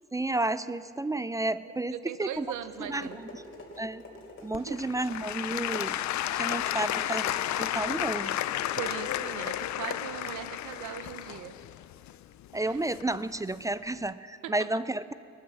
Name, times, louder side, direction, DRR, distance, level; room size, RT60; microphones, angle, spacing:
voice 1, 0.1-2.5 2.9-3.3 3.8-4.0 4.4-6.0 6.3-8.4 12.5-15.1, right 2 dB, 10° right, 15 dB, 0.4 m, -31 dB
voice 2, 1.6-3.2 4.5-4.8 8.7-11.6 12.7-12.8 14.4-14.5, right 10 dB, 80° right, 12 dB, 0.9 m, -39 dB
sound 1, 2.3-11.2, left 2 dB, 45° left, 3.3 m, -49 dB
Applause / Crowd, 4.5-13.4 14.0-14.1, left 13 dB, 65° left, 0.5 m, -32 dB
17.5 x 11.0 x 7.1 m, 2.7 s
cardioid pair, 90°, 30 cm